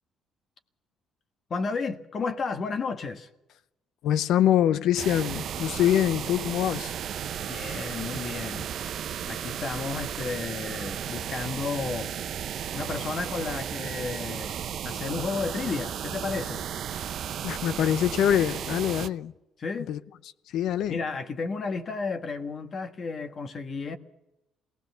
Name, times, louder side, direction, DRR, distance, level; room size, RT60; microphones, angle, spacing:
voice 1, 1.5-3.3 7.4-8.7 9.2-12.1 12.7-14.6 14.8-16.6 19.6-19.9 20.9-24.0, left 4 dB, 45° left, 1.5 m, -32 dB
voice 2, 4.0-6.9 17.4-19.3 19.9-20.0 20.5-21.0, left 11 dB, 75° left, 0.6 m, -24 dB
sound 1, 5.0-19.1, right 9 dB, 65° right, 0.8 m, -34 dB
21.0 x 18.0 x 7.0 m
supercardioid pair, 75°, 0 cm